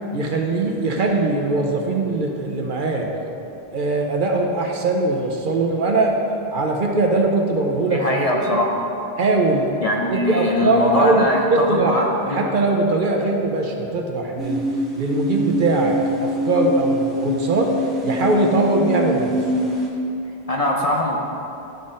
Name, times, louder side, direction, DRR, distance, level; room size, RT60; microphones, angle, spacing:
voice 1, 0.1-3.1 3.7-6.1 6.5-8.0 8.3-8.6 9.2-9.7 10.1-12.0 12.3-14.6 15.0-17.7 18.0-19.3, right 2 dB, 55° right, 1 dB, 0.8 m, -21 dB
voice 2, 7.9-8.8 9.8-12.4 20.5-21.2, left 1 dB, 45° left, -1 dB, 0.5 m, -22 dB
sound 1, 14.4-19.9, equal, ahead, 1.4 m, -24 dB
11.5 x 4.1 x 3.7 m, 2.8 s
omnidirectional pair, 1.1 m